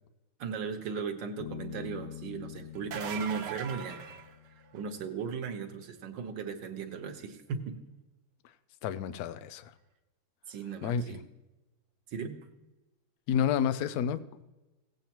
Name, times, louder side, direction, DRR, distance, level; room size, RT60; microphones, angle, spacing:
voice 1, 0.4-4.0 4.7-7.8 10.5-11.2 12.1-12.4, right 5 dB, 65° right, 6 dB, 1.6 m, -37 dB
Bass guitar, 1.4-4.9, left 10 dB, 70° left, 1.1 m, -45 dB
sound 1, 2.7-5.0 10.5-10.6 12.4-12.5, right 7 dB, 90° right, 1.6 m, -40 dB
voice 2, 8.8-9.7 10.8-11.0 13.3-14.2, left 8 dB, 90° left, 12 dB, 0.8 m, -29 dB
17.0 x 8.2 x 2.9 m, 1.1 s
omnidirectional pair, 2.3 m